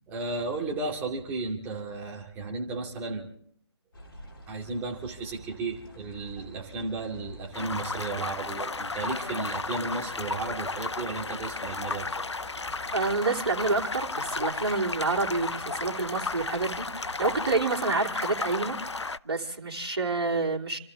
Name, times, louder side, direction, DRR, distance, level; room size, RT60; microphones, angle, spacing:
voice 1, 0.1-3.3 4.5-12.1, right 3 dB, 10° right, -2 dB, 2.5 m, -34 dB
sound 1, 3.9-17.6, equal, 50° left, 4.7 m, -48 dB
sound 2, 7.5-19.2, left 3 dB, 75° left, 0.6 m, -34 dB
voice 2, 12.9-18.8 19.2-20.8, right 3 dB, 60° right, -2 dB, 3.1 m, -28 dB
29.0 x 14.0 x 3.6 m, 0.62 s
figure-of-eight pair, 145°, 15 cm